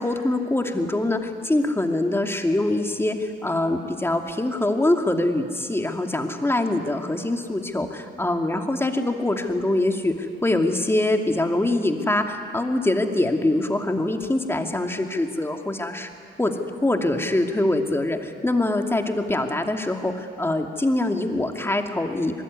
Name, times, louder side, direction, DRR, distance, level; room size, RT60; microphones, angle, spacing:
voice 1, 0.0-16.1 16.4-22.4, left 1 dB, 10° left, 4 dB, 2.5 m, -24 dB
26.5 x 20.5 x 9.7 m, 2.2 s
cardioid pair, 90°, 20 cm